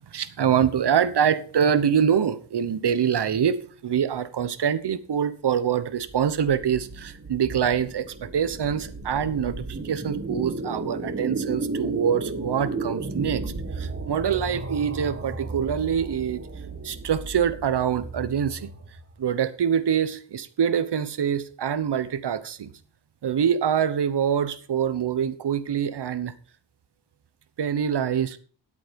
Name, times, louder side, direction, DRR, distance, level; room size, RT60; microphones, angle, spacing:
voice 1, 0.1-16.4 16.8-18.7 19.2-22.7 23.2-26.3 27.6-28.4, right 8 dB, 65° right, 1.1 m, -25 dB
sound 1, 6.0-19.2, right 3 dB, 30° right, 1.8 m, -34 dB
11.0 x 8.3 x 5.2 m
wide cardioid pair, 100°, 44 cm